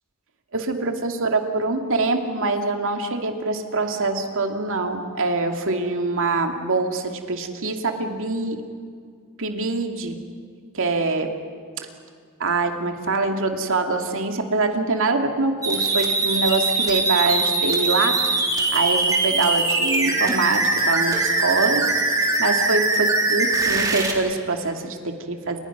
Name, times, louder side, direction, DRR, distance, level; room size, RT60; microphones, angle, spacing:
voice 1, 0.5-8.6 9.4-10.2 10.7-11.3 11.8-11.9 12.4-18.2 18.7-21.9 22.4-25.6, right 3 dB, 65° right, 4 dB, 2.6 m, -24 dB
sound 1, 15.6-24.1, right 3 dB, 15° right, 3.6 m, -22 dB
29.5 x 28.0 x 6.1 m, 2.2 s
head